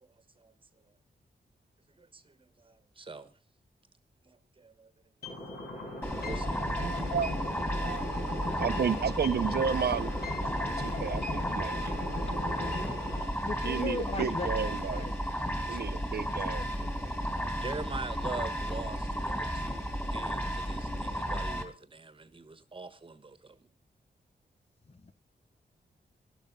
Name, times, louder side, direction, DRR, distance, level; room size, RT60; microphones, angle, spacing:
voice 1, 2.0-3.3 4.2-4.9 6.2-6.7 7.0-7.2 15.7-15.8 17.3-23.7, right 3 dB, 30° right, 1.3 m, -44 dB
sound 1, 5.2-13.2, left 2 dB, 65° left, 6.8 m, -38 dB
sound 2, 6.0-21.6, equal, 15° left, 2.8 m, -33 dB
voice 2, 6.6-7.3 7.7-8.0 8.6-10.1 10.8-11.9 13.6-15.0 15.7-16.6, right 7 dB, 65° right, 0.9 m, -32 dB
voice 3, 13.4-15.1 16.8-16.9 24.9-25.1, left 3 dB, 35° left, 1.0 m, -37 dB
12.5 x 12.0 x 5.3 m
wide cardioid pair, 110°, 17 cm